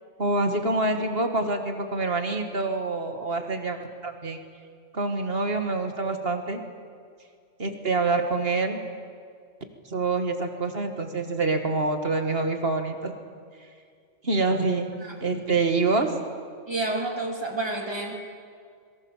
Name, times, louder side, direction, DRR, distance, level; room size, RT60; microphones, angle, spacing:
voice 1, 0.2-4.4 4.9-6.6 7.6-8.8 9.9-13.2 14.2-14.9 15.2-16.1, right 3 dB, 55° right, 5 dB, 2.3 m, -26 dB
voice 2, 16.7-18.1, right 2 dB, 20° right, 0 dB, 3.2 m, -29 dB
25.5 x 23.0 x 7.5 m, 2.2 s
omnidirectional pair, 1.2 m